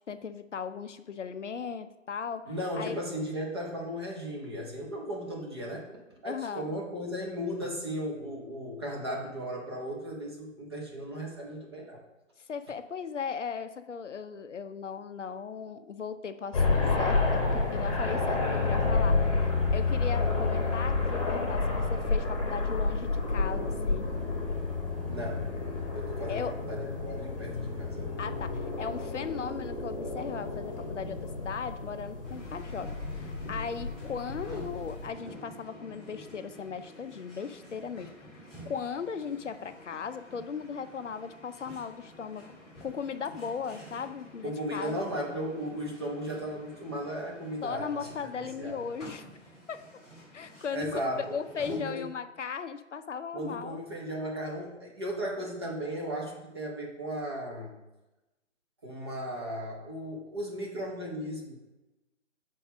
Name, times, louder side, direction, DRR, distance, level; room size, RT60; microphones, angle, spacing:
voice 1, 0.1-3.0 6.2-6.7 12.5-24.1 26.3-26.5 28.2-42.5 42.8-45.1 47.6-49.3 49.7-49.8 50.3-53.8, left 6 dB, 65° left, 10 dB, 0.6 m, -37 dB
voice 2, 2.5-5.9 6.2-12.0 25.0-25.5 25.9-26.4 26.7-28.1 44.4-47.9 48.6-48.8 50.7-51.4 51.7-52.0 53.3-57.7 58.8-61.5, equal, 20° right, -2 dB, 0.9 m, -36 dB
sound 1, 16.5-35.1, left 3 dB, 25° left, 1.2 m, -30 dB
sound 2, 32.2-51.8, equal, ahead, 0.5 m, -49 dB
6.5 x 4.6 x 5.1 m, 1.0 s
figure-of-eight pair, 160°, 39 cm